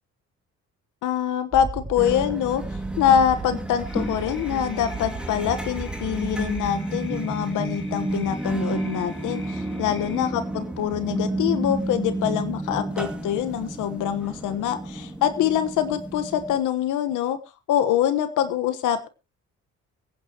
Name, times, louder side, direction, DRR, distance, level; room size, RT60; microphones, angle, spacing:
voice 1, 1.0-2.6 3.0-17.4 17.7-19.1, left 9 dB, 85° left, 11 dB, 1.3 m, -24 dB
sound 1, 1.5-6.7, right 4 dB, 30° right, 2.9 m, -36 dB
sound 2, 2.0-16.6, right 1 dB, 5° right, 2.2 m, -31 dB
sound 3, 3.9-10.3, left 4 dB, 40° left, 3.3 m, -47 dB
24.0 x 9.8 x 3.0 m, 0.28 s
cardioid pair, 90°, 30 cm